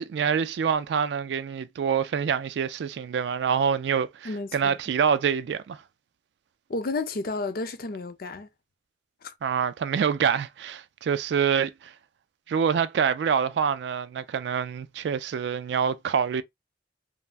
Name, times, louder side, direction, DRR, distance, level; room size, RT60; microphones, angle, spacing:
voice 1, 0.0-5.8 9.4-11.9 12.5-16.4, right 7 dB, 70° right, 0.3 m, -26 dB
voice 2, 4.2-4.8 6.7-8.5 9.2-9.3, left 3 dB, 55° left, 0.5 m, -32 dB
3.3 x 2.0 x 2.4 m
head